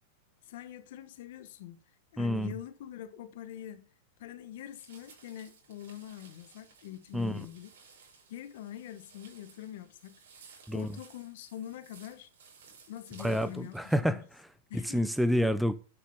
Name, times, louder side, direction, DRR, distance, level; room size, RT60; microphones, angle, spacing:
voice 1, 0.4-1.8 2.1-3.9 4.2-7.7 8.3-10.2 10.7-12.3 12.9-13.8 14.0-14.2 14.7-15.0, left 11 dB, 65° left, 1.5 m, -44 dB
voice 2, 2.2-2.5 7.1-7.5 10.7-11.0 13.2-15.7, equal, ahead, 0.7 m, -29 dB
sound 1, 4.7-14.0, right 5 dB, 80° right, 6.3 m, -58 dB
9.7 x 6.5 x 5.7 m
supercardioid pair, 135°, 0 cm